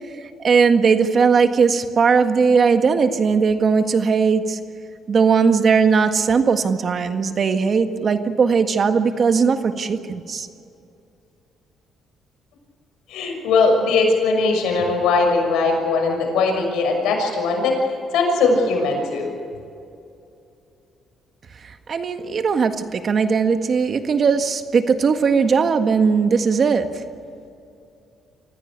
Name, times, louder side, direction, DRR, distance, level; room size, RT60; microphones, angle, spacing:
voice 1, 0.4-4.6 5.1-10.5 21.9-27.0, right 5 dB, 50° right, 8 dB, 1.7 m, -18 dB
voice 2, 13.1-17.7 18.1-19.3, left 3 dB, 90° left, 2 dB, 6.3 m, -19 dB
25.0 x 16.0 x 8.8 m, 2.6 s
cardioid pair, 90°, 0 cm